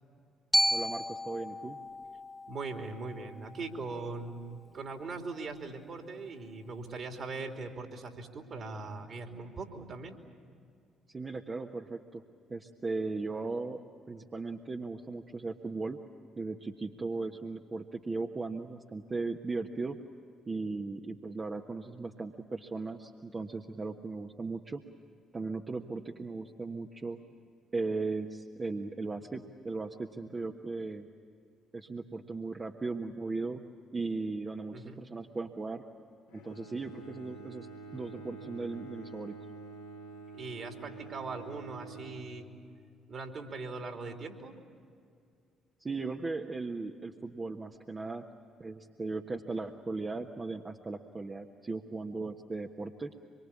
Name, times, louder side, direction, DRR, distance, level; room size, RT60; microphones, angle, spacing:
Glockenspiel, 0.5-4.6, equal, ahead, 1.8 m, -34 dB
voice 1, 0.7-1.8 11.1-12.2 12.5-13.8 14.1-16.0 16.4-20.0 20.5-24.8 25.3-27.2 27.7-31.1 31.7-33.6 33.9-35.8 36.3-37.7 37.9-39.4 45.8-48.2 48.6-53.1, right 3 dB, 30° right, 2 dB, 1.4 m, -37 dB
voice 2, 2.5-10.2 34.7-35.0 40.3-42.5 43.1-44.5, right 3 dB, 50° right, 4 dB, 3.1 m, -40 dB
Bowed string instrument, 36.3-43.0, right 3 dB, 75° left, 2.3 m, -48 dB
25.5 x 23.5 x 8.6 m, 2.3 s
figure-of-eight pair, 45°, 0 cm